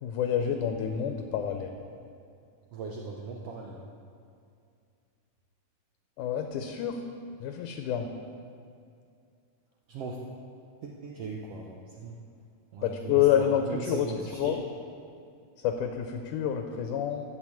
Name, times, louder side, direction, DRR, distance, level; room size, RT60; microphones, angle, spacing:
voice 1, 0.0-1.7 6.2-7.0 7.4-8.1 12.8-14.6 15.6-17.2, left 9 dB, 80° left, 5 dB, 2.0 m, -28 dB
voice 2, 2.7-3.9 9.9-10.2 10.8-12.2 12.7-14.6, right 4 dB, 85° right, -1 dB, 1.3 m, -39 dB
13.5 x 4.6 x 8.4 m, 2.4 s
omnidirectional pair, 3.9 m